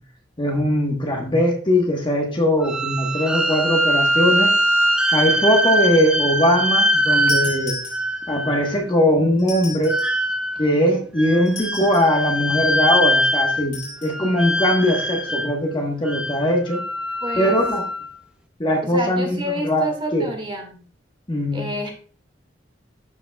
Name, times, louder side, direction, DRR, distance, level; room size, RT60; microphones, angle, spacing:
voice 1, 0.4-4.5 5.1-7.8 8.3-10.0 10.6-16.8 17.3-17.8 18.6-19.4 19.6-19.9 20.1-20.3 21.3-21.7, equal, 25° left, 2 dB, 1.2 m, -20 dB
sound 1, 2.6-8.8 9.9-10.7 11.2-13.8 14.0-15.6 16.1-18.1, equal, 5° right, 0.6 m, -22 dB
sound 2, 7.3-8.4 9.4-10.2 11.5-12.2 13.7-14.2, left 4 dB, 50° left, 3.7 m, -34 dB
voice 2, 17.2-17.6 18.8-20.8 21.5-21.9, equal, 30° right, 3 dB, 1.8 m, -28 dB
12.0 x 5.1 x 2.3 m, 0.41 s
head